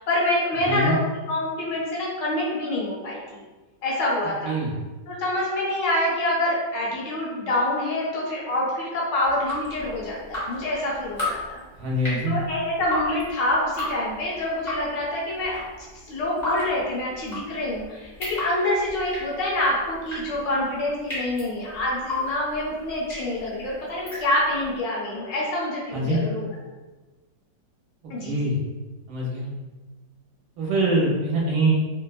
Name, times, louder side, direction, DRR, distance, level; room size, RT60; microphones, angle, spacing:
voice 1, 0.0-3.2 3.8-4.5 5.1-11.6 12.3-15.7 16.1-26.5 28.1-28.3, left 1 dB, 75° left, -5 dB, 1.5 m, -26 dB
voice 2, 0.6-1.0 4.4-4.7 11.7-12.4 25.9-26.2 28.2-28.6 29.1-29.5 30.6-31.7, right 2 dB, 65° right, -4 dB, 1.2 m, -23 dB
Drip, 9.2-24.7, left 2 dB, 35° left, 0.7 m, -34 dB
3.3 x 2.1 x 2.3 m, 1.2 s
omnidirectional pair, 2.0 m